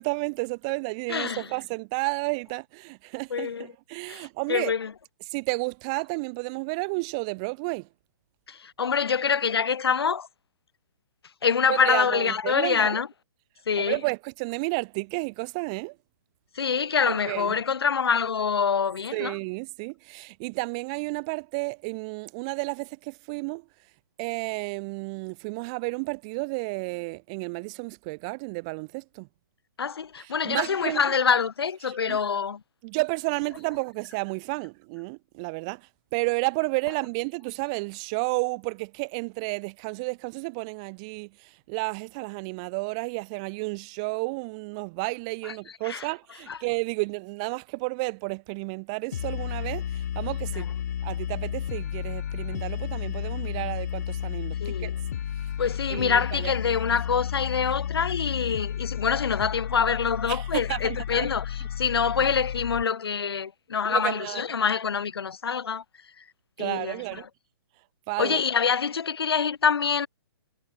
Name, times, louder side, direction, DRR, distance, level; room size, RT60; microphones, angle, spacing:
voice 1, 0.0-4.7 5.3-7.9 11.7-13.0 13.8-16.0 17.1-17.6 19.1-23.6 24.2-29.3 30.2-31.2 31.8-32.2 32.8-50.7 51.0-54.9 55.9-56.5 60.3-61.3 63.8-64.4 66.6-67.3 68.1-68.4, right 30 dB, 15° right, 0.7 m, -32 dB
voice 2, 1.1-1.4 3.3-3.7 4.1-4.9 8.5-10.3 11.4-13.1 13.7-14.0 16.5-19.3 29.8-32.6 45.4-45.5 45.8-46.0 46.5-46.6 50.6-50.7 54.6-54.9 55.6-65.8 66.6-67.2 68.2-70.1, left 6 dB, 75° left, 3.1 m, -26 dB
sound 1, 49.1-62.8, left 9 dB, 40° left, 3.6 m, -32 dB
hypercardioid pair, 180°, 13 cm